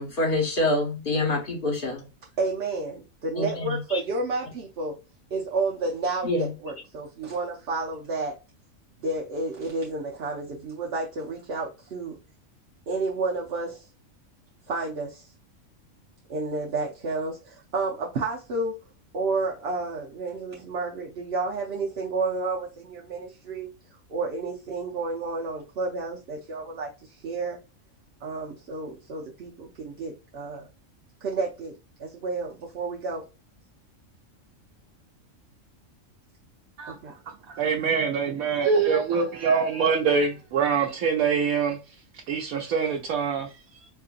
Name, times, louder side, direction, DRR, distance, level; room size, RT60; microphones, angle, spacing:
voice 1, 0.0-2.0 3.3-4.0 6.2-6.5, left 2 dB, 40° left, 1.3 m, -26 dB
voice 2, 2.4-4.9 5.3-8.3 9.0-12.1 12.9-13.7 14.7-15.1 16.3-17.4 17.7-18.7 19.1-23.7 24.1-26.9 27.2-27.6 28.2-30.6 31.2-31.7 32.0-33.2 37.0-37.1, right 3 dB, 55° right, 0.9 m, -30 dB
voice 3, 37.3-41.8 42.3-43.5, right 5 dB, 90° right, 1.1 m, -24 dB
4.6 x 2.6 x 2.5 m
omnidirectional pair, 1.4 m